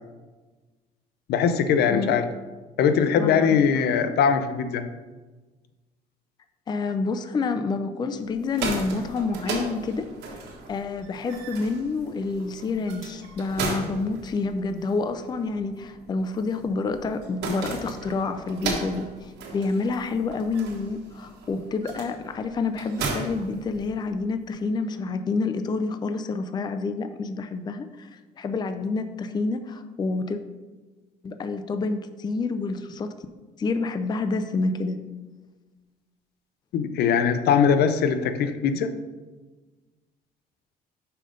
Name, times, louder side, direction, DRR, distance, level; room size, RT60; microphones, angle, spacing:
voice 1, 1.3-2.3 2.8-4.9 36.7-38.9, left 7 dB, 70° left, 10 dB, 0.6 m, -21 dB
voice 2, 1.9-2.3 3.2-3.6 6.7-10.1 10.7-30.4 31.2-33.1 33.6-35.0, left 3 dB, 25° left, 8 dB, 0.4 m, -28 dB
sound 1, 8.3-24.3, right 4 dB, 85° right, 1.4 m, -36 dB
5.7 x 5.0 x 5.1 m, 1.3 s
cardioid pair, 110°, 17 cm